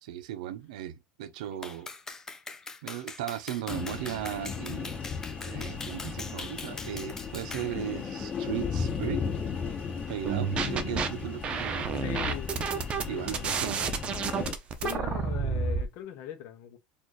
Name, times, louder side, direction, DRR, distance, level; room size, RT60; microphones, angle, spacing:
voice 1, 0.0-1.9 2.8-5.0 5.5-9.2 10.1-12.0 13.1-14.0, right 12 dB, 85° right, 0.6 m, -37 dB
Clapping, 1.6-7.7, left 3 dB, 15° left, 0.5 m, -42 dB
sound 1, 3.7-14.5, left 6 dB, 30° left, 1.9 m, -36 dB
sound 2, 10.2-11.1 11.4-15.8, right 5 dB, 30° right, 0.6 m, -30 dB
voice 2, 11.9-13.8 14.8-16.8, left 10 dB, 55° left, 0.7 m, -40 dB
4.3 x 2.5 x 3.1 m
supercardioid pair, 140°, 4 cm